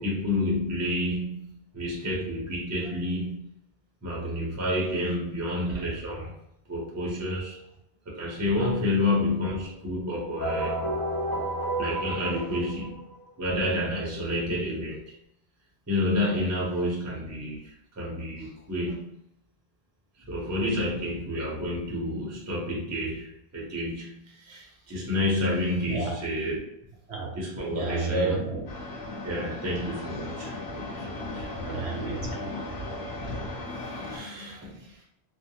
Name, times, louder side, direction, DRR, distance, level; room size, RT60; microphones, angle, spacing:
voice 1, 0.0-3.4 4.0-6.3 6.7-7.6 8.1-10.8 11.8-13.0 13.4-15.1 15.9-19.0 20.3-26.6 27.3-28.3 29.2-31.5 33.8-35.0, left 1 dB, 20° right, -5 dB, 0.6 m, -29 dB
sound 1, 10.4-13.3, right 1 dB, 25° left, 0.5 m, -31 dB
voice 2, 27.7-28.6 31.7-32.5 33.0-34.6, right 3 dB, 75° right, -1 dB, 0.9 m, -32 dB
sound 2, 28.7-34.2, left 2 dB, 70° left, 1.0 m, -36 dB
2.5 x 2.1 x 2.7 m, 0.80 s
omnidirectional pair, 1.1 m